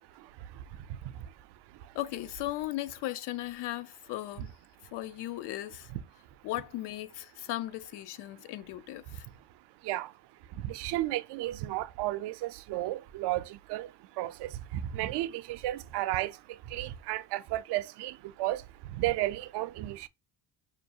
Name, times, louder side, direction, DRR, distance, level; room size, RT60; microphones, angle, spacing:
voice 1, 0.1-2.0 5.9-6.0 9.8-10.2 10.5-20.1, right 15 dB, 75° right, 0.5 m, -34 dB
voice 2, 1.9-4.5 4.9-5.9 6.4-9.3, left 15 dB, 75° left, 0.5 m, -37 dB
5.2 x 2.3 x 2.7 m
cardioid pair, 135°, 41 cm